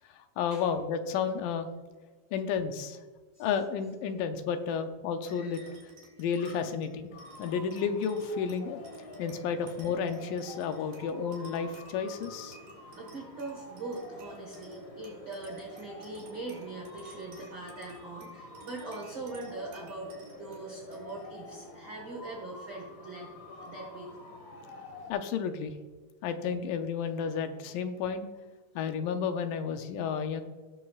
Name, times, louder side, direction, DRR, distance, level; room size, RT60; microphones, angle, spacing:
voice 1, 0.2-1.7 2.3-3.0 3.4-5.6 6.2-7.1 7.4-8.8 9.2-12.6 25.1-25.8 26.2-28.3 28.8-30.4, left 6 dB, 80° left, 8 dB, 2.3 m, -32 dB
Screaming, 5.2-6.0 6.3-7.1 7.4-8.3, left 1 dB, 30° left, 2.7 m, -55 dB
sound 1, 5.3-24.1, right 3 dB, 80° right, 3.7 m, -54 dB
sound 2, 7.1-25.1, left 2 dB, 55° left, 1.3 m, -48 dB
voice 2, 13.0-20.1 20.4-23.3 23.6-24.1, right 3 dB, 45° right, -2 dB, 1.7 m, -41 dB
18.5 x 6.4 x 2.4 m, 1.4 s
omnidirectional pair, 4.0 m